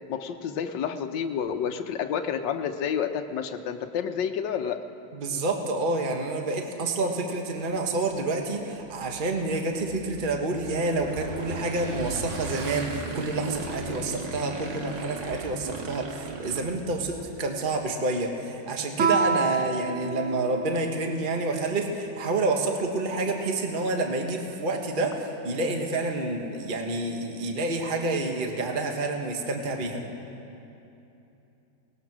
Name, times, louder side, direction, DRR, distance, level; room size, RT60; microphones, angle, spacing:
voice 1, 0.1-4.8, left 7 dB, 75° left, 6 dB, 1.5 m, -29 dB
voice 2, 5.1-30.0, right 2 dB, 30° right, 3 dB, 1.5 m, -28 dB
Motorcycle / Engine, 7.7-17.4, right 3 dB, 70° right, 2.1 m, -37 dB
Guitar, 19.0-21.4, right 4 dB, 45° right, 1.1 m, -28 dB
22.5 x 19.5 x 6.0 m, 2.9 s
omnidirectional pair, 2.0 m